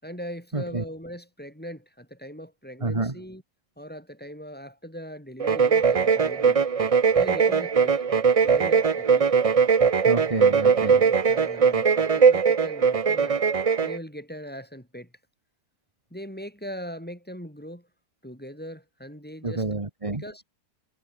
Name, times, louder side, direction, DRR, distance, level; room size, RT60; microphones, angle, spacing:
voice 1, 0.0-3.4 3.8-6.6 7.1-8.0 8.4-9.3 10.8-13.4 13.8-15.1 16.1-17.9 18.2-19.6 20.1-20.4, equal, 5° left, 4.8 m, -40 dB
voice 2, 0.5-0.8 2.8-3.2 10.1-11.1 19.4-20.2, right 3 dB, 20° right, 1.8 m, -29 dB
sound 1, 5.4-14.0, right 6 dB, 40° right, 0.5 m, -20 dB
omnidirectional pair, 1.6 m